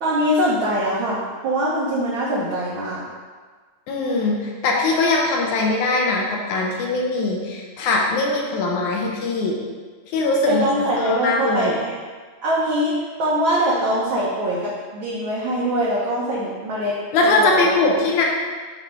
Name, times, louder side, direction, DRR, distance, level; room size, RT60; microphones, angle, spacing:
voice 1, 0.0-3.0 10.4-11.9 12.4-17.7, equal, 65° right, -6 dB, 1.2 m, -23 dB
voice 2, 3.9-9.6 10.1-11.8 17.1-18.2, left 3 dB, 80° left, -1 dB, 2.4 m, -21 dB
7.1 x 3.3 x 5.3 m, 1.5 s
omnidirectional pair, 3.4 m